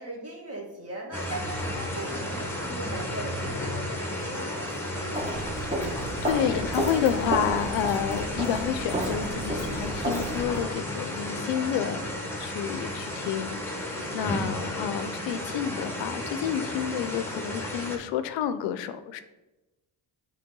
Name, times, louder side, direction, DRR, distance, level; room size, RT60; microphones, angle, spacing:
voice 1, 0.0-5.3 11.5-12.0, right 1 dB, 35° right, -1 dB, 1.8 m, -39 dB
sound 1, 1.1-18.0, left 1 dB, 5° left, 1.2 m, -33 dB
Walk footsteps, 5.1-10.7, right 1 dB, 15° right, 1.1 m, -31 dB
voice 2, 6.2-12.0 12.4-19.2, left 9 dB, 80° left, 11 dB, 0.6 m, -30 dB
7.6 x 3.4 x 3.8 m, 1.1 s
cardioid pair, 80°, 43 cm